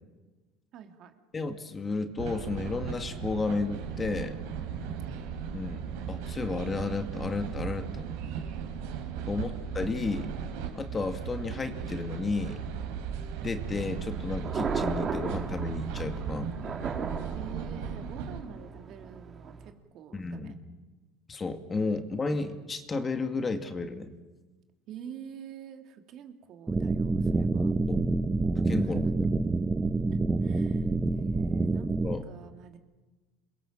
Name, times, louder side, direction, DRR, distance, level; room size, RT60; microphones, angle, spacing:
voice 1, 0.7-1.1 4.8-5.0 9.4-9.6 17.3-20.6 24.9-27.7 28.8-29.3 30.1-32.0 32.3-32.8, right 8 dB, 55° right, 6 dB, 2.9 m, -47 dB
voice 2, 1.3-4.4 5.5-8.0 9.3-10.3 10.8-12.6 13.4-16.5 20.1-20.5 21.3-24.1 27.9-28.1 28.7-29.1 32.0-32.3, left 3 dB, 20° left, 7 dB, 2.3 m, -32 dB
sound 1, 2.2-18.4, right 7 dB, 85° right, 4.9 m, -36 dB
Thunder, 13.7-19.7, right 5 dB, 30° right, 3.6 m, -36 dB
sound 2, 26.7-32.1, right 3 dB, 15° right, 0.9 m, -27 dB
28.0 x 21.5 x 7.6 m, 1.2 s
supercardioid pair, 125°, 0 cm